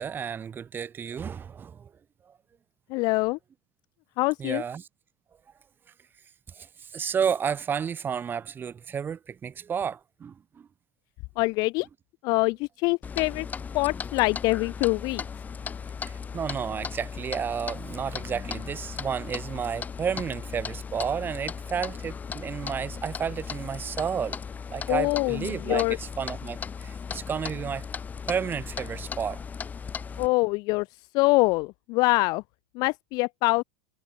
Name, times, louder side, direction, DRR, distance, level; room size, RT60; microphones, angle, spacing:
voice 1, 0.0-1.9 4.4-4.9 6.6-6.7 6.9-10.7 16.0-24.4 24.7-27.8 28.3-29.4, right 7 dB, 15° right, 4.2 m, -31 dB
voice 2, 2.9-3.4 4.2-4.6 11.4-11.9 12.2-13.5 13.7-15.2 24.9-26.0 30.2-30.9 31.1-32.4 32.8-33.6, left 25 dB, 30° left, 0.4 m, -24 dB
Clock, 13.0-30.3, left 6 dB, 10° left, 1.6 m, -37 dB
supercardioid pair, 170°, 13 cm